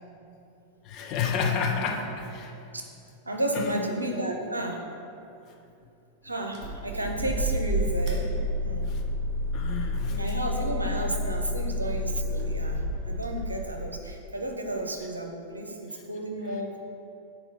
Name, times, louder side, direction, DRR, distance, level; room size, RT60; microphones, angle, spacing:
voice 1, 0.9-2.5 3.6-3.7 8.8-9.0 9.5-10.2, left 6 dB, 40° left, 2 dB, 0.8 m, -30 dB
voice 2, 3.2-4.8 6.2-8.2 8.6-8.8 10.1-16.8, right 1 dB, 80° right, 2 dB, 0.8 m, -32 dB
sound 1, 6.5-13.9, equal, 35° right, 1.6 m, -29 dB
7.1 x 4.3 x 5.5 m, 2.7 s
figure-of-eight pair, 90°, 0 cm